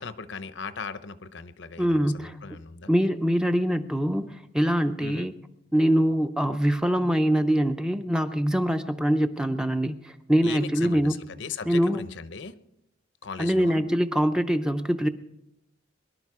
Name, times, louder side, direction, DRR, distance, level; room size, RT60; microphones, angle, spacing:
voice 1, 0.0-2.9 5.0-5.3 10.4-12.6 13.2-13.8, left 5 dB, 65° left, 13 dB, 0.7 m, -38 dB
voice 2, 1.8-2.4 2.9-5.3 5.7-11.2 11.7-12.0 13.4-15.1, equal, 5° right, 8 dB, 0.5 m, -24 dB
22.5 x 12.0 x 4.8 m, 0.84 s
head